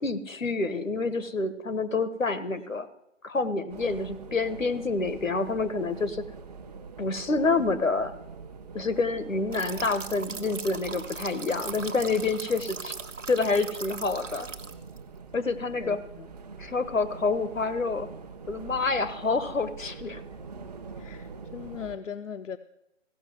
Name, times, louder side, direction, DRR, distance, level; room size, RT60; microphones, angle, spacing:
voice 1, 0.0-2.9 3.2-6.2 7.0-8.1 8.7-12.9 13.3-14.5 15.3-16.0 16.6-18.1 18.5-20.2, left 3 dB, 90° left, 1.3 m, -28 dB
sound 1, 3.7-22.0, right 4 dB, 30° right, 0.9 m, -44 dB
sound 2, 9.5-15.0, right 5 dB, 75° right, 1.2 m, -40 dB
voice 2, 15.8-16.3 21.0-22.6, left 7 dB, 70° left, 0.7 m, -39 dB
15.5 x 6.3 x 7.8 m
figure-of-eight pair, 150°, 38 cm